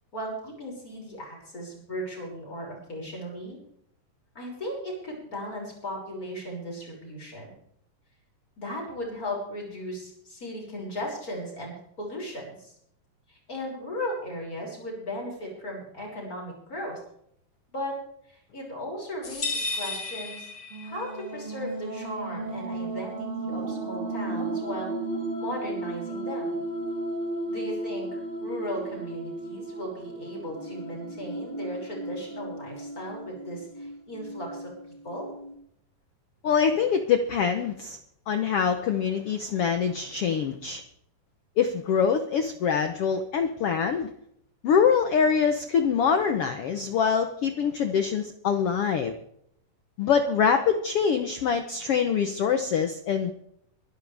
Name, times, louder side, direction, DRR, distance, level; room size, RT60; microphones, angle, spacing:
voice 1, 0.1-3.6 4.3-7.5 8.6-12.7 13.3-17.0 17.7-18.0 18.3-20.5 20.8-24.9 25.4-26.5 27.5-34.7 35.0-35.3, equal, 25° left, -1 dB, 6.5 m, -36 dB
sound 1, 19.2-21.2, left 3 dB, 45° left, 4.2 m, -33 dB
sound 2, 20.7-35.6, right 2 dB, 20° right, 1.7 m, -35 dB
voice 2, 36.4-38.0 38.3-40.8 41.6-44.1 44.6-49.1 50.0-53.3, left 6 dB, 85° left, 8 dB, 1.3 m, -24 dB
24.0 x 12.5 x 3.5 m, 0.71 s
omnidirectional pair, 4.1 m